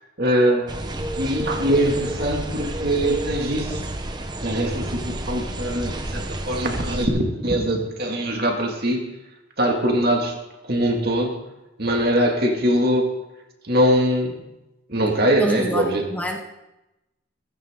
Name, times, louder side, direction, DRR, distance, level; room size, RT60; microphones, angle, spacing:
voice 1, 0.2-0.8 1.2-3.8 4.4-9.0 9.6-10.3 10.6-11.4 11.8-13.1 13.7-14.4 14.9-16.0, right 1 dB, 50° right, 1 dB, 2.3 m, -22 dB
sound 1, 0.7-7.1, right 1 dB, 20° right, 0.9 m, -30 dB
voice 2, 15.4-16.4, left 1 dB, 10° left, 2 dB, 0.9 m, -27 dB
15.0 x 15.0 x 3.8 m, 0.95 s
head